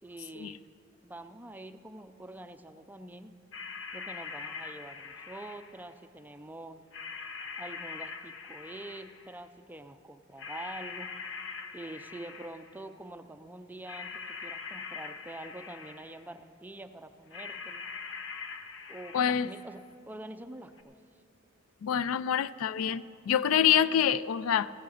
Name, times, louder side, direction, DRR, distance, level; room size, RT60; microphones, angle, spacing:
voice 1, 0.0-0.6 1.0-3.3 3.9-6.8 7.6-11.2 11.7-17.8 18.9-20.9, right 1 dB, 10° right, 9 dB, 0.4 m, -45 dB
sound 1, 3.5-5.9 6.9-9.3 10.4-12.8 13.8-16.3 17.3-19.7 20.8-20.9, left 5 dB, 65° left, 0.8 m, -42 dB
voice 2, 19.1-19.5 21.8-24.7, left 9 dB, 85° left, 17 dB, 0.3 m, -26 dB
15.5 x 8.4 x 6.3 m, 2.7 s
head